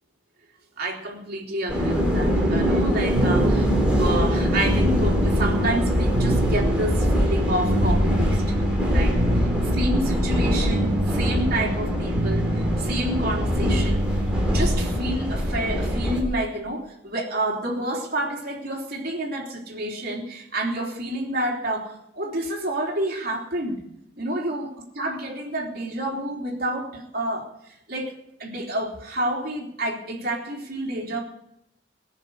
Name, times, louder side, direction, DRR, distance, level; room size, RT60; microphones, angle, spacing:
voice 1, 0.8-3.7 4.0-8.4 8.9-9.2 9.7-14.2 14.5-23.8 24.2-31.2, right 1 dB, 55° right, 0 dB, 3.4 m, -29 dB
sound 1, 1.7-16.2, equal, 5° right, 4.0 m, -23 dB
sound 2, 3.1-15.0, right 1 dB, 90° right, 1.8 m, -28 dB
20.5 x 6.8 x 8.1 m, 0.78 s
head